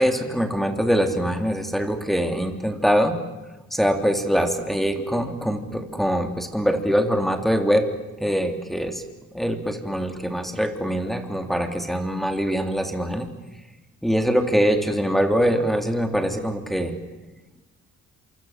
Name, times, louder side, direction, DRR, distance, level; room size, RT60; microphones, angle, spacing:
voice 1, 0.0-3.2 3.7-7.8 8.2-9.0 9.3-13.3 14.0-16.9, equal, ahead, 6 dB, 3.5 m, -23 dB
27.0 x 26.0 x 7.7 m, 1.1 s
cardioid pair, 90°, 30 cm